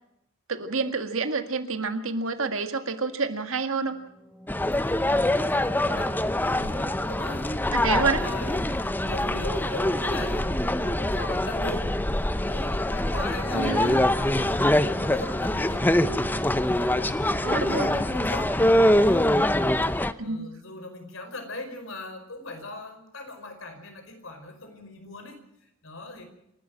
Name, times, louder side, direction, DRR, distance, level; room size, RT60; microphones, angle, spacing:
voice 1, 0.5-4.0 7.7-8.2 13.5-14.0 17.4-18.0 20.2-20.5, right 4 dB, 70° right, 8 dB, 1.9 m, -28 dB
sound 1, 3.8-19.6, right 1 dB, 10° right, 3.8 m, -47 dB
sound 2, 4.5-20.1, left 1 dB, 10° left, 0.7 m, -24 dB
voice 2, 4.8-15.8 16.1-19.7 20.2-26.2, left 2 dB, 65° left, 6 dB, 4.9 m, -40 dB
sound 3, 13.0-19.5, left 2 dB, 85° left, 3.3 m, -44 dB
27.5 x 12.5 x 7.7 m, 0.80 s
head